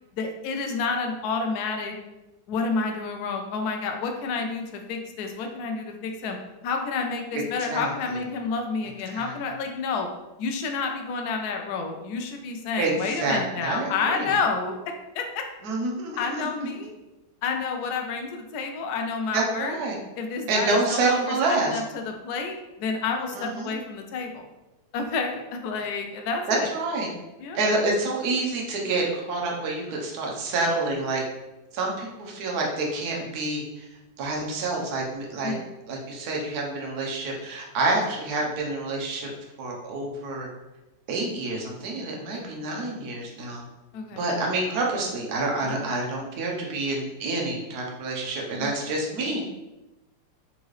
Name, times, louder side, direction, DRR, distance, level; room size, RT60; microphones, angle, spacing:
voice 1, 0.2-1.9 2.5-6.4 6.6-10.1 10.4-14.8 15.1-15.4 16.2-16.9 17.4-19.8 20.2-24.5 24.9-26.7 27.4-27.6 35.4-35.6 42.3-42.5 43.9-44.2 48.6-48.8, left 4 dB, 70° left, 3 dB, 0.9 m, -29 dB
voice 2, 7.7-8.2 9.1-9.3 12.8-14.3 15.6-16.7 19.3-20.0 20.5-21.7 23.3-23.7 26.5-27.1 27.5-31.2 31.7-33.9 34.2-35.5 35.9-39.3 39.6-40.5 41.1-43.6 44.2-49.4, right 2 dB, 60° right, -1 dB, 1.3 m, -28 dB
4.0 x 3.6 x 3.1 m, 1.0 s
omnidirectional pair, 2.0 m